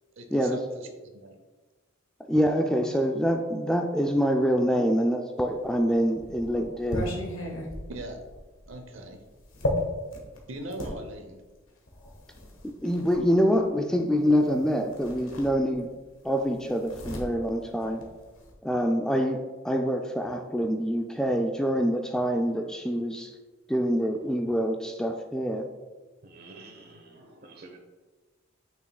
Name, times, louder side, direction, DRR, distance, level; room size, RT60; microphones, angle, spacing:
voice 1, 0.2-1.4 7.9-8.2 8.7-9.2 10.5-11.4, right 1 dB, 70° right, 5 dB, 0.8 m, -40 dB
voice 2, 2.2-7.1 12.6-15.9 16.2-18.0 18.6-19.4 19.6-23.3 23.7-25.7, equal, 5° left, 3 dB, 0.3 m, -25 dB
sound 1, 5.6-11.0 11.9-13.2 14.5-14.6 14.9-16.0 16.3-18.5, left 1 dB, 85° left, 1.4 m, -35 dB
voice 3, 26.3-27.7, right 3 dB, 50° right, 2 dB, 1.3 m, -49 dB
9.0 x 6.2 x 2.3 m, 1.3 s
head